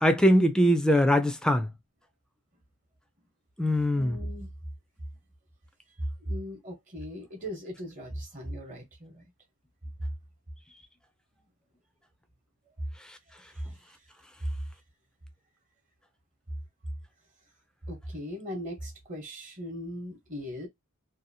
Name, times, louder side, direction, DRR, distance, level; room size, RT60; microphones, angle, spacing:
voice 1, 0.0-1.7 3.6-4.2, equal, 5° left, 0.4 m, -22 dB
voice 2, 3.9-4.5 6.2-9.2 17.9-20.7, equal, 35° right, 0.9 m, -38 dB
2.8 x 2.3 x 2.6 m
head